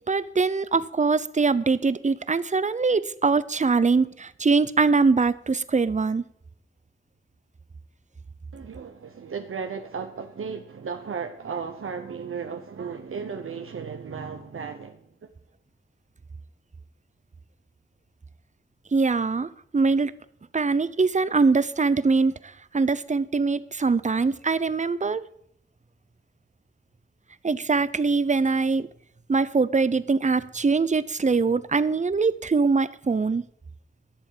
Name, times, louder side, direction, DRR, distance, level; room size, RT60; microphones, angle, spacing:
voice 1, 0.0-6.2 18.9-20.1 20.5-25.2 27.4-28.9 29.3-33.4, right 4 dB, 35° right, 0.6 m, -23 dB
voice 2, 8.5-15.3, right 6 dB, 85° right, 0.8 m, -35 dB
11.5 x 7.1 x 7.2 m
wide cardioid pair, 90°, 21 cm